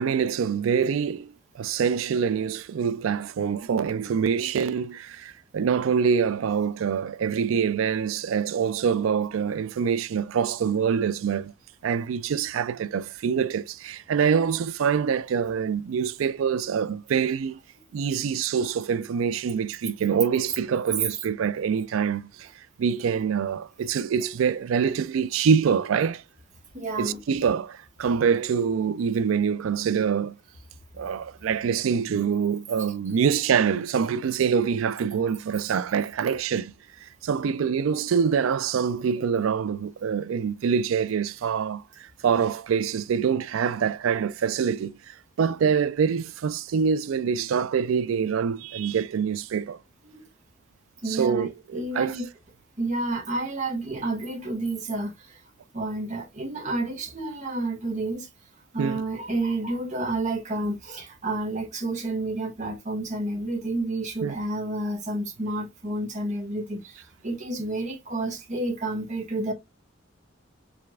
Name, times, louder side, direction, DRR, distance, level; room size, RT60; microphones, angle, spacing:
voice 1, 0.0-11.5 11.8-17.6 17.9-22.5 22.8-26.2 27.0-30.4 31.0-36.7 37.0-49.8 51.1-52.2 58.8-59.0 64.2-64.4, right 6 dB, 85° right, 0.4 m, -25 dB
voice 2, 26.7-27.2 50.1-50.2 51.0-52.3 52.8-55.4 55.7-58.3 58.7-69.5, right 2 dB, 35° right, 1.2 m, -30 dB
4.9 x 3.4 x 2.4 m
head